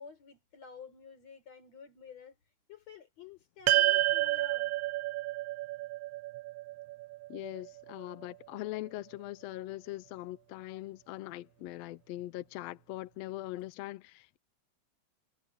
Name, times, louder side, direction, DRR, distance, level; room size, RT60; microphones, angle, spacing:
voice 1, 0.0-2.4 2.7-4.7, left 6 dB, 60° left, 5.7 m, -51 dB
sound 1, 3.7-8.1, right 17 dB, 80° right, 2.0 m, -30 dB
voice 2, 7.3-14.4, left 16 dB, 75° left, 1.6 m, -41 dB
omnidirectional pair, 3.5 m